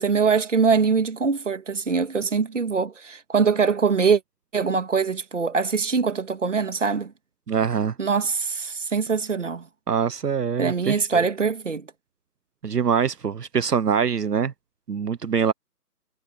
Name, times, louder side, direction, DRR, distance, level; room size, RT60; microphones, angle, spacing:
voice 1, 0.0-4.2 4.5-7.1 8.0-9.7 10.6-11.9, right 5 dB, 45° right, 2.2 m, -23 dB
voice 2, 7.5-7.9 9.9-11.3 12.6-14.5 14.9-15.5, right 7 dB, 70° right, 1.1 m, -24 dB
hypercardioid pair, 175°, 49 cm